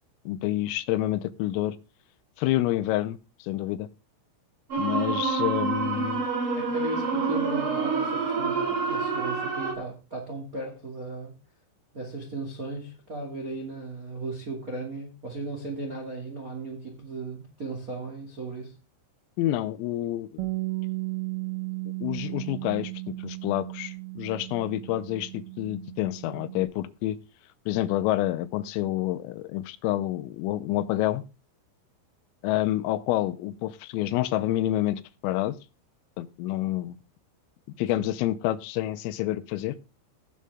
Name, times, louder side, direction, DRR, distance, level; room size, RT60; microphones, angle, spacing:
voice 1, 0.3-1.8 2.4-3.9 4.8-6.3 19.4-20.4 22.0-27.2 27.7-31.2 32.4-35.6 36.2-37.0 37.8-39.8, left 14 dB, 85° left, 3.4 m, -28 dB
sound 1, 4.7-9.7, right 4 dB, 35° right, 2.7 m, -27 dB
voice 2, 6.5-11.3 11.9-18.8 38.0-38.1, right 2 dB, 50° right, 1.0 m, -36 dB
Bass guitar, 20.4-26.6, right 24 dB, 85° right, 2.1 m, -35 dB
18.0 x 7.6 x 3.6 m
omnidirectional pair, 5.9 m